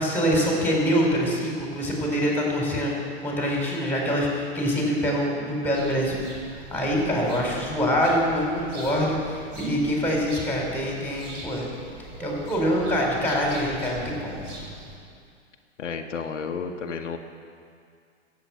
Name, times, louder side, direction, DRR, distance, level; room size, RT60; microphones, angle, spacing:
voice 1, 0.0-2.9 3.2-11.7 12.2-14.4, equal, 5° left, -2 dB, 4.2 m, -25 dB
sound 1, 5.7-15.0, right 2 dB, 30° right, 3.0 m, -41 dB
voice 2, 15.8-17.2, left 5 dB, 85° left, 4 dB, 1.1 m, -32 dB
14.5 x 8.3 x 7.7 m, 2.2 s
hypercardioid pair, 115°, 36 cm